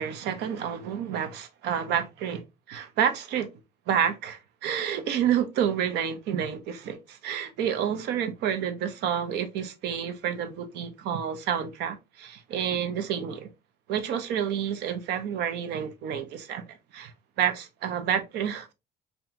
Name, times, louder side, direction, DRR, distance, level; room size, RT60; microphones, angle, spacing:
voice 1, 0.0-3.5 3.9-13.5 13.9-18.7, right 8 dB, 80° right, 0.7 m, -29 dB
4.2 x 2.3 x 2.5 m
cardioid pair, 110°, 17 cm